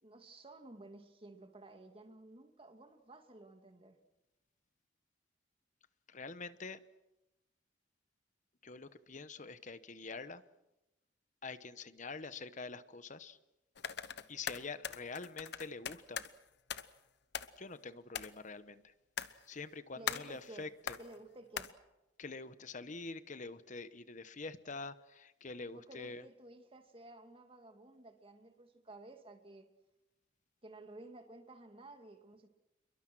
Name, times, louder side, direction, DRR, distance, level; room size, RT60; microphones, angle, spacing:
voice 1, 0.0-4.0 19.9-20.7 21.0-21.7 25.7-29.7 30.6-32.5, right 2 dB, 30° right, 5 dB, 2.4 m, -54 dB
voice 2, 6.1-6.8 8.6-10.4 11.4-13.4 14.3-16.2 17.6-18.9 19.5-21.0 22.2-26.2, left 4 dB, 40° left, 13 dB, 1.0 m, -46 dB
sound 1, 13.8-16.3 16.7-17.0 17.3-17.8 18.1-18.4 19.2-19.6 20.1-20.4 20.9-21.2 21.6-21.7, left 7 dB, 65° left, 1.0 m, -41 dB
27.5 x 22.5 x 6.2 m, 0.97 s
head